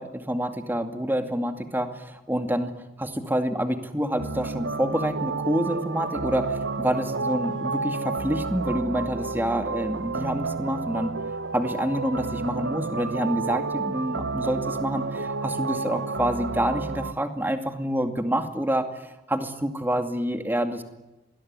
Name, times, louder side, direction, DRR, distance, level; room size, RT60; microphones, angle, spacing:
voice 1, 0.0-2.7 3.0-11.1 11.5-20.8, right 1 dB, 10° right, 8 dB, 2.3 m, -27 dB
sound 1, 4.2-17.1, right 3 dB, 65° right, 1.1 m, -31 dB
26.5 x 21.0 x 9.7 m, 1.0 s
head